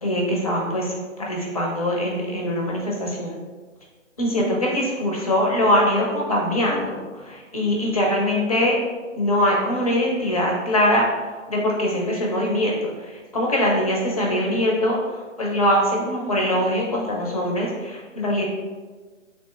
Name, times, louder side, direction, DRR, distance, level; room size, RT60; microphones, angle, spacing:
voice 1, 0.0-3.4 4.2-8.8 9.1-11.1 11.5-18.5, left 1 dB, 30° left, -2 dB, 0.5 m, -22 dB
3.1 x 2.7 x 3.2 m, 1.4 s
hypercardioid pair, 155°, 40 cm